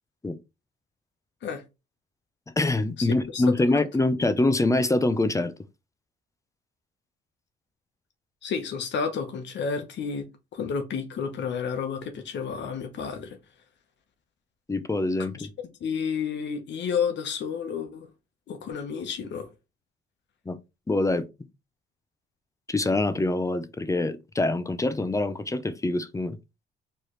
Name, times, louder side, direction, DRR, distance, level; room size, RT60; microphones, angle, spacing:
voice 1, 2.6-5.5 14.7-15.5 20.5-20.6 20.9-21.2 22.7-26.4, left 2 dB, 15° left, 0.6 m, -25 dB
voice 2, 8.4-13.4 15.2-15.5 15.8-18.1 18.5-19.5, left 6 dB, 65° left, 1.0 m, -31 dB
4.3 x 3.3 x 3.2 m
cardioid pair, 90°, 20 cm